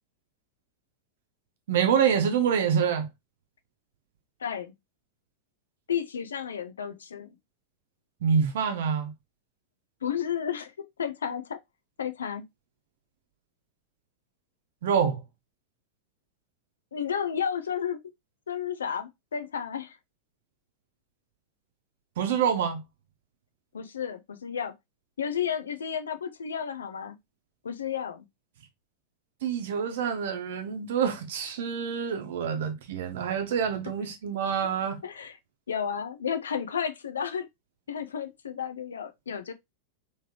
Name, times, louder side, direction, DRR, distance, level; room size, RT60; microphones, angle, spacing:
voice 1, 1.7-3.1 8.2-9.1 14.8-15.2 22.2-22.8 29.4-35.0, right 7 dB, 55° right, 0.9 m, -26 dB
voice 2, 4.4-4.7 5.9-7.3 10.0-11.6 12.0-12.4 16.9-18.0 18.5-20.0 23.7-24.7 25.2-27.2 27.6-28.3 35.0-35.4 35.7-37.5 37.9-39.5, left 8 dB, 70° left, 0.5 m, -32 dB
3.6 x 3.2 x 2.8 m
figure-of-eight pair, 90°, 0 cm